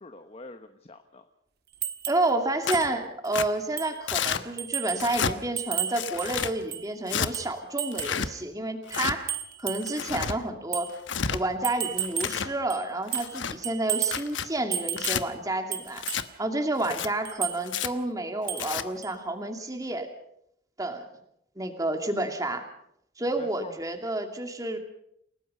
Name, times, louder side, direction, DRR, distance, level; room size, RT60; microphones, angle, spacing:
voice 1, 0.0-1.2 16.8-17.2 23.4-23.7, left 2 dB, 35° left, 8 dB, 1.0 m, -45 dB
sound 1, 1.8-2.3 2.7-2.9 3.2-3.3 3.8-4.0 4.6-5.1 5.6-6.9 7.3-8.2 8.9-10.1 10.7-10.9 11.6-12.4 12.7-13.4 13.6-14.3 14.7-15.3 15.7-16.3 17.2-17.6 18.5-18.7 19.0-19.1, right 10 dB, 60° right, 1.6 m, -33 dB
voice 2, 2.1-9.3 9.6-10.9 11.3-16.0 16.4-20.1 20.8-21.0 21.6-22.7 23.2-24.8, right 2 dB, 20° right, 5 dB, 2.5 m, -30 dB
Tearing, 2.6-2.9 3.3-3.5 4.1-4.4 4.9-5.3 5.9-6.5 7.1-7.3 7.9-8.3 8.9-9.2 9.8-10.4 10.9-11.4 12.0-12.5 13.1-13.6 14.0-14.5 15.0-15.2 16.0-16.3 16.8-17.1 17.7-17.9 18.5-18.8, left 7 dB, 90° left, 1.1 m, -30 dB
29.0 x 18.0 x 5.5 m, 0.74 s
head